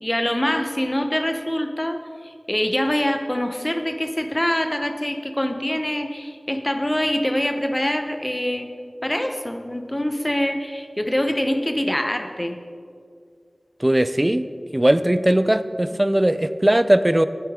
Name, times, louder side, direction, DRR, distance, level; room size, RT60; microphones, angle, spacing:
voice 1, 0.0-8.7 9.0-12.6, left 1 dB, 20° left, 7 dB, 0.9 m, -24 dB
voice 2, 13.8-14.5 14.7-17.2, right 1 dB, 25° right, 13 dB, 0.4 m, -18 dB
11.5 x 9.3 x 3.7 m, 2.3 s
wide cardioid pair, 45°, 0 cm